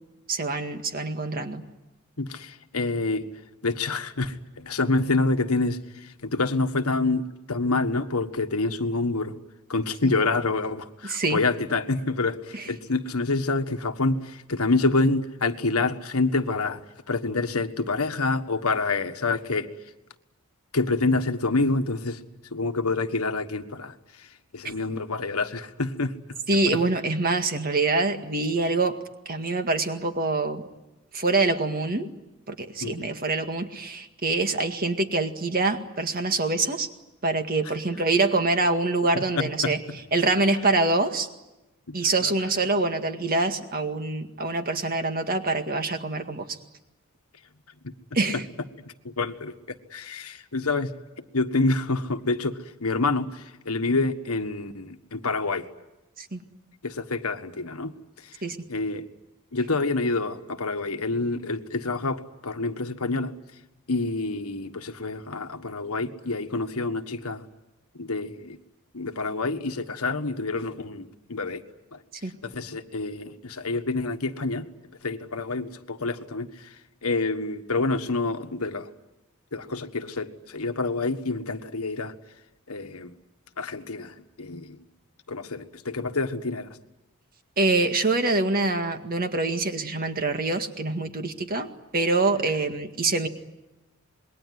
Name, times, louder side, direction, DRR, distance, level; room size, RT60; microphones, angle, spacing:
voice 1, 0.3-1.6 10.0-10.1 11.1-11.4 12.5-12.7 26.5-29.0 29.3-30.6 31.1-32.1 32.5-36.9 37.2-39.8 40.1-41.3 41.9-46.6 48.1-48.4 56.2-56.4 58.4-58.6 72.2-72.3 87.6-93.3, right 3 dB, 40° right, 6 dB, 2.0 m, -25 dB
voice 2, 2.2-3.3 3.6-9.4 9.7-16.8 17.1-19.7 20.7-22.2 22.5-24.3 24.5-26.1 32.8-33.1 39.1-40.0 41.9-42.3 47.8-47.9 48.3-48.4 48.8-50.9 51.3-55.7 56.8-58.4 58.7-59.0 59.5-63.3 63.9-67.4 68.0-68.6 68.9-71.6 71.9-72.0 72.4-74.7 75.0-78.9 79.5-82.1 82.7-83.2 83.6-84.8 85.3-86.7, left 3 dB, 85° left, 8 dB, 1.5 m, -27 dB
27.0 x 21.5 x 9.5 m, 1.0 s
head